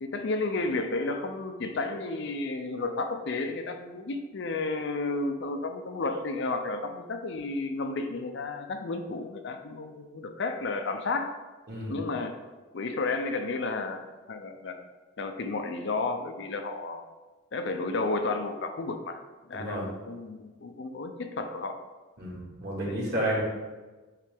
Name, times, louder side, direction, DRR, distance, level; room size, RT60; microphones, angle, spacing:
voice 1, 0.0-11.3 11.9-12.4 12.7-14.8 15.2-17.0 17.5-19.2 19.5-21.8 22.8-23.1, left 3 dB, 60° left, 6 dB, 0.5 m, -32 dB
voice 2, 19.5-19.9 22.2-23.4, right 1 dB, 50° right, -5 dB, 2.0 m, -31 dB
8.3 x 3.3 x 3.5 m, 1.3 s
head